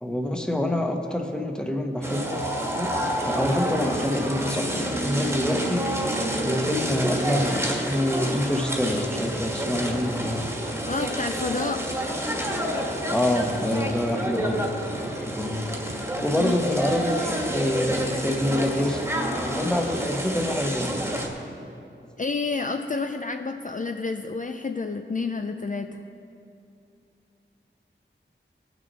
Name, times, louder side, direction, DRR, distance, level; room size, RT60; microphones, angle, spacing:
voice 1, 0.0-2.4 2.8-2.9 3.2-5.9 6.4-10.5 13.1-15.6 16.2-19.0 19.5-21.2, left 1 dB, 5° left, 3 dB, 1.1 m, -26 dB
sound 1, 2.0-21.3, right 1 dB, 15° right, 1.5 m, -29 dB
voice 2, 10.9-11.8 16.4-16.6 22.2-26.0, left 4 dB, 40° left, 6 dB, 0.5 m, -29 dB
17.5 x 6.2 x 4.1 m, 2.6 s
wide cardioid pair, 45°, 20 cm